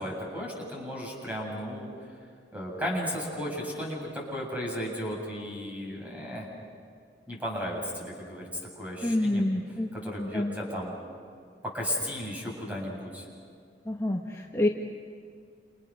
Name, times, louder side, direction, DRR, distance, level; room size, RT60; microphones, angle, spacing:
voice 1, 0.0-1.9 2.5-6.5 7.3-8.5 8.8-9.4 9.9-10.9 11.6-13.3, equal, 10° right, -2 dB, 7.7 m, -34 dB
voice 2, 9.0-9.9 10.2-10.6 13.8-14.7, left 1 dB, 20° left, 0 dB, 1.4 m, -27 dB
29.5 x 29.0 x 6.5 m, 2.3 s
head